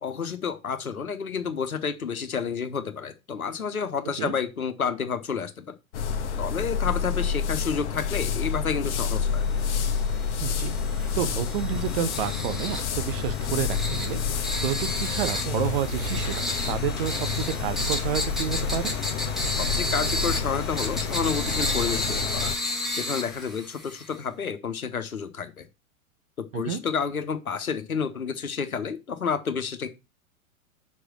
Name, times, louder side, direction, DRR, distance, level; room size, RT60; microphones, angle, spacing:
voice 1, 0.0-5.7 6.4-9.5 19.5-22.5 22.9-25.7 26.4-29.9, left 6 dB, 75° left, 1.4 m, -30 dB
sound 1, 5.9-22.6, left 6 dB, 55° left, 1.3 m, -29 dB
sound 2, 9.3-24.2, left 1 dB, ahead, 1.7 m, -33 dB
voice 2, 10.4-10.8 11.2-18.9 26.5-26.8, right 10 dB, 40° right, 0.9 m, -30 dB
5.7 x 4.9 x 6.2 m
figure-of-eight pair, 100°, 43 cm